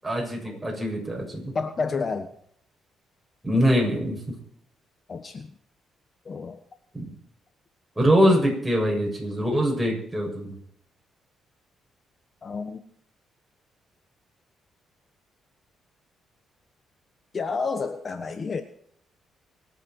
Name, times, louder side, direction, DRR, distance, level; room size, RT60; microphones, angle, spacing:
voice 1, 0.0-1.5 3.4-4.2 6.9-7.0 8.0-10.5, equal, 10° right, 0 dB, 7.3 m, -23 dB
voice 2, 1.5-2.3 5.1-5.5 6.2-6.6 12.4-12.8 17.3-18.6, left 4 dB, 40° left, 9 dB, 1.3 m, -30 dB
25.0 x 8.6 x 4.7 m, 0.65 s
cardioid pair, 90°, 0 cm